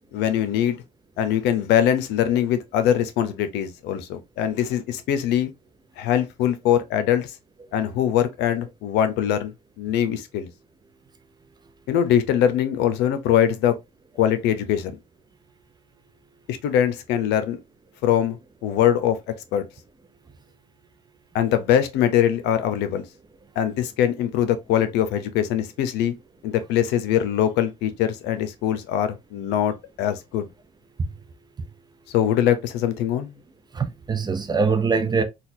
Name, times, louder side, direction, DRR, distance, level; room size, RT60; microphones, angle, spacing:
voice 1, 0.1-0.8 1.2-5.5 6.0-7.3 7.7-9.5 9.8-10.5 11.9-13.8 14.2-15.0 16.5-17.6 18.0-18.4 18.6-19.2 19.5-19.7 21.3-23.0 23.6-26.1 26.4-30.5 32.1-33.4, left 10 dB, 90° left, 0.7 m, -22 dB
voice 2, 33.7-35.2, right 5 dB, 25° right, 0.5 m, -23 dB
4.0 x 2.3 x 2.6 m
cardioid pair, 110°, 17 cm